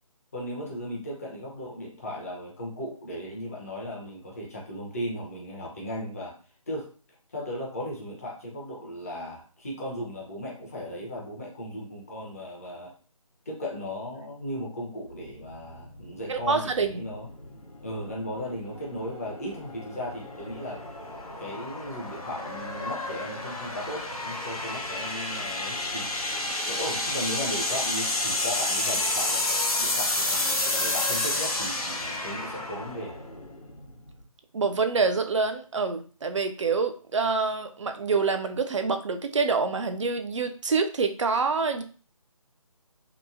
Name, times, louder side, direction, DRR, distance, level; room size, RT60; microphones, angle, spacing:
voice 1, 0.3-6.4 6.7-6.9 7.3-12.9 13.5-17.3 17.8-20.8 21.4-26.1 26.7-33.2, equal, 25° left, -3 dB, 0.6 m, -36 dB
sound 1, 15.1-34.2, left 2 dB, 85° left, 0.7 m, -31 dB
voice 2, 16.3-17.0 34.5-41.8, right 4 dB, 55° right, 7 dB, 0.4 m, -26 dB
2.9 x 2.1 x 2.4 m, 0.39 s
figure-of-eight pair, 150°, 18 cm